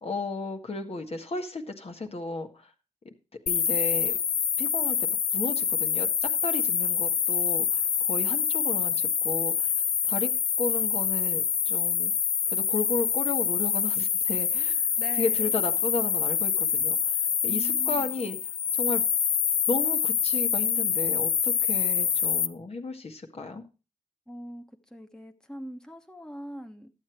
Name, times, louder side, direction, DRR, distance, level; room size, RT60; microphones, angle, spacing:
voice 1, 0.0-2.7 3.5-4.2 4.6-10.3 10.6-12.1 12.5-14.9 15.1-18.4 18.7-19.0 19.7-23.6, left 3 dB, 55° left, 4 dB, 1.5 m, -34 dB
sound 1, 3.5-22.5, left 8 dB, 80° left, 0.5 m, -26 dB
voice 2, 15.0-15.5 17.4-18.1 24.3-24.6 24.9-26.9, equal, 5° left, 4 dB, 1.2 m, -42 dB
11.5 x 7.9 x 4.6 m, 0.30 s
cardioid pair, 50°, 12 cm